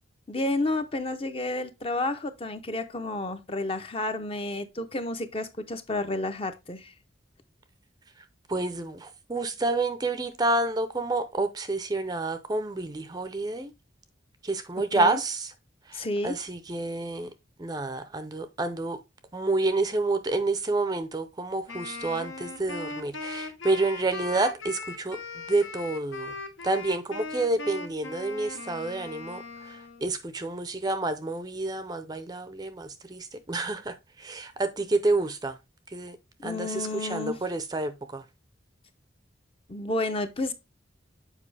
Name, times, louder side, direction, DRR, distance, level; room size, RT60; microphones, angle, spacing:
voice 1, 0.3-6.9 15.0-15.2 15.9-16.3 36.4-37.4 39.7-40.5, left 2 dB, 30° left, 0.6 m, -31 dB
voice 2, 8.2-13.7 14.4-15.5 15.9-17.3 17.6-19.0 19.3-26.4 26.6-35.6 35.9-36.2 36.4-38.3, right 2 dB, 20° right, 0.5 m, -29 dB
Wind instrument woodwind instrument, 21.7-30.1, left 3 dB, 80° left, 1.0 m, -39 dB
7.4 x 4.9 x 3.3 m
head